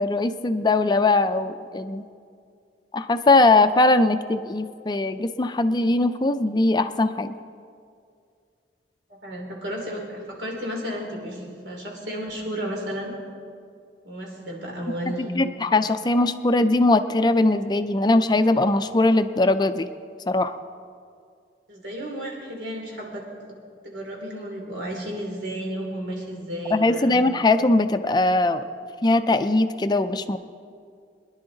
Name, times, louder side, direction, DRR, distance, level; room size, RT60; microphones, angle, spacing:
voice 1, 0.0-2.0 2.9-7.3 15.4-19.9 20.3-20.5 26.7-28.6 29.0-30.4, left 2 dB, 25° left, 10 dB, 0.4 m, -20 dB
voice 2, 9.1-13.1 14.0-15.3 21.7-23.2 23.8-27.2, equal, 85° right, -1 dB, 2.9 m, -33 dB
22.5 x 10.5 x 3.9 m, 2.3 s
head